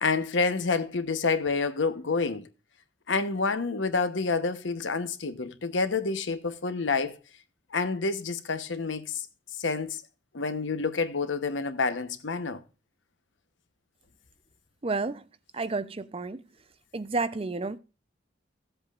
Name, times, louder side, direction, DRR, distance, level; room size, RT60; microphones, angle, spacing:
voice 1, 0.0-2.5 3.1-7.2 7.7-9.2 9.6-10.0 10.3-12.6, left 4 dB, 80° left, 1.0 m, -28 dB
voice 2, 14.8-15.2 15.5-16.4 16.9-17.8, right 3 dB, 30° right, 0.5 m, -31 dB
15.5 x 7.9 x 2.4 m
head